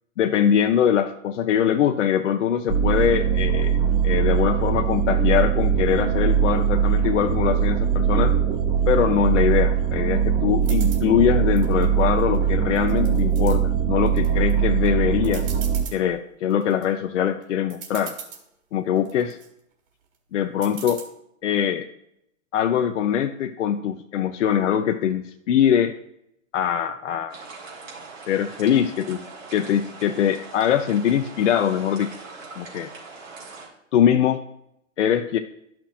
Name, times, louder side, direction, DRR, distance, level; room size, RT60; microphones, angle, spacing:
voice 1, 0.2-3.8 4.0-8.3 8.9-15.5 15.9-18.2 18.7-19.4 20.3-21.0 21.4-21.9 22.5-25.9 26.5-27.4 28.3-29.2 29.5-32.1 32.6-32.9 33.9-34.4 35.0-35.4, left 9 dB, 65° left, 6 dB, 0.6 m, -22 dB
sound 1, 2.7-15.8, right 8 dB, 20° right, 0.8 m, -21 dB
sound 2, 10.6-11.0 11.6-12.4 12.8-13.6 14.1-14.5 14.9-15.0 15.2-16.0 16.5-16.9 17.4-17.5 17.7-18.4 19.0-19.5 20.6-21.0, right 7 dB, 45° right, 1.9 m, -39 dB
sound 3, 27.3-33.7, right 4 dB, 80° right, 3.1 m, -41 dB
11.5 x 6.0 x 2.4 m, 0.77 s
hypercardioid pair, 125°, 39 cm